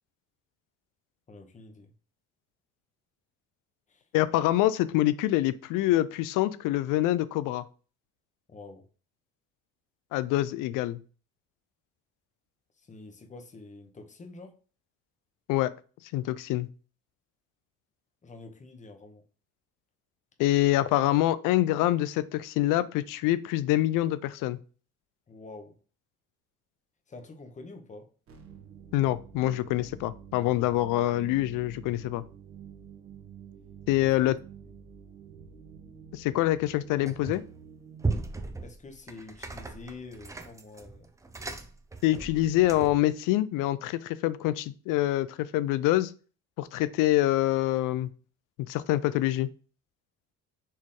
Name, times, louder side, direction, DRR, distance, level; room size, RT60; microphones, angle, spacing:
voice 1, 1.3-1.9 3.9-4.1 8.5-8.9 12.8-14.6 18.2-19.2 25.3-25.8 27.1-28.1 34.0-34.1 38.6-41.1, left 3 dB, 25° left, 1.0 m, -47 dB
voice 2, 4.1-7.6 10.1-11.0 15.5-15.7 16.1-16.7 20.4-24.6 28.9-32.2 33.9-34.4 36.1-37.4 42.0-46.1 46.6-48.1 48.7-49.5, left 15 dB, 75° left, 0.5 m, -25 dB
sound 1, 28.3-38.3, right 7 dB, 45° right, 1.1 m, -49 dB
sound 2, 37.1-37.6 38.0-43.1, right 3 dB, 10° right, 0.4 m, -36 dB
4.4 x 3.1 x 3.6 m
cardioid pair, 110°, 32 cm